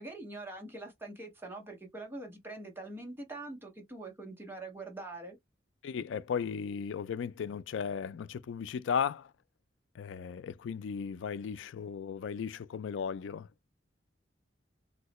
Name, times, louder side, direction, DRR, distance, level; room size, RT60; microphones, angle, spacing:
voice 1, 0.0-5.4, right 2 dB, 10° right, 1.2 m, -44 dB
voice 2, 5.8-9.3 10.0-13.5, left 7 dB, 85° left, 0.3 m, -36 dB
3.2 x 2.8 x 3.0 m
head